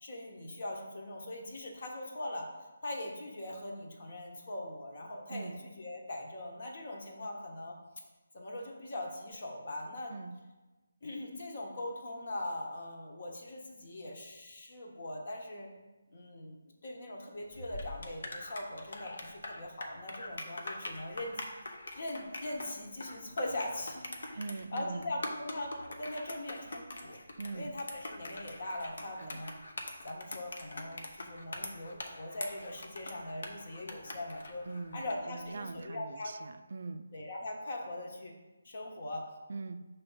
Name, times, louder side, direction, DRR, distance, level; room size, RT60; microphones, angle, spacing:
voice 1, 0.0-2.5 2.8-7.8 8.3-10.1 11.0-15.7 16.1-16.5 16.8-21.4 21.9-24.0 24.3-27.2 27.5-29.5 30.0-34.6 34.9-36.3 37.1-38.3 38.6-39.2, left 1 dB, 50° left, 1 dB, 1.2 m, -41 dB
sound 1, 17.5-35.3, left 2 dB, 65° left, 0.9 m, -44 dB
voice 2, 24.4-25.1 27.4-27.7 29.2-29.4 34.7-37.1 39.5-39.8, right 3 dB, 55° right, 9 dB, 0.3 m, -42 dB
5.6 x 3.4 x 5.6 m, 1.2 s
hypercardioid pair, 170°, 0 cm